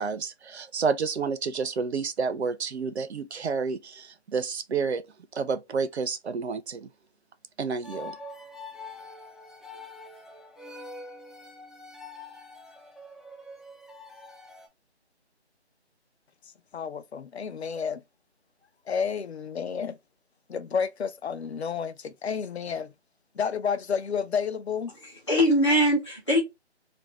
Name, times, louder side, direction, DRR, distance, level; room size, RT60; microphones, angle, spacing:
voice 1, 0.0-5.0 5.3-6.9 7.6-8.1, right 5 dB, 70° right, 0.5 m, -30 dB
sound 1, 7.8-14.7, left 2 dB, ahead, 0.3 m, -44 dB
voice 2, 16.7-18.0 18.9-20.0 20.5-22.9 23.4-24.9, left 6 dB, 70° left, 0.5 m, -30 dB
voice 3, 25.0-26.4, equal, 25° left, 0.8 m, -22 dB
2.6 x 2.1 x 2.9 m
figure-of-eight pair, 180°, 34 cm